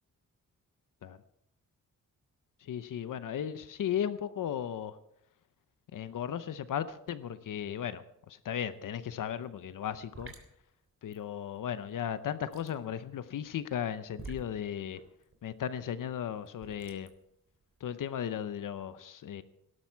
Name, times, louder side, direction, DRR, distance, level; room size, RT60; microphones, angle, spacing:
voice 1, 2.6-5.0 5.9-10.3 11.0-15.0 15.4-17.1 17.8-19.4, left 9 dB, 75° left, 12 dB, 0.8 m, -36 dB
sound 1, 8.6-8.9 9.1-17.8, right 3 dB, 40° right, 3.4 m, -51 dB
19.0 x 12.0 x 4.6 m, 0.79 s
wide cardioid pair, 110°, 33 cm